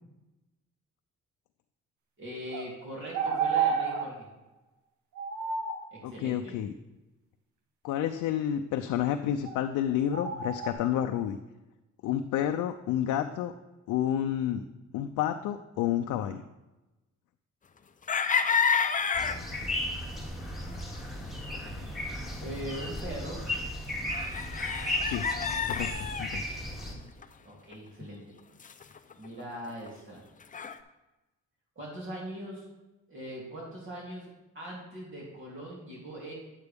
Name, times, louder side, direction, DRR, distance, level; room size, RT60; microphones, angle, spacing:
voice 1, 2.2-4.3 5.9-6.5 22.4-23.4 27.4-28.3 29.2-30.2 31.7-32.7 33.1-36.3, right 1 dB, 40° right, -4 dB, 3.0 m, -41 dB
sound 1, 2.5-2.6 3.1-4.1 5.1-5.8 9.4-9.6 10.1-10.7, right 6 dB, 75° right, 1.2 m, -29 dB
voice 2, 6.0-6.7 7.8-11.4 12.0-13.5 13.9-14.6 14.9-16.4 25.0-25.2 25.7-26.5, left 10 dB, 90° left, 6 dB, 0.5 m, -30 dB
sound 2, 18.1-19.4 20.8-20.9 21.5-21.7 22.3-22.4 23.0-23.1 24.1-26.3 26.8-26.9 27.2-27.3 27.7-27.8 28.0-28.1 28.6-29.9 30.4-30.8, left 6 dB, 25° left, 0.6 m, -29 dB
sound 3, 19.1-26.9, left 1 dB, ahead, 2.2 m, -35 dB
9.0 x 8.1 x 3.5 m, 1.0 s
cardioid pair, 90°, 30 cm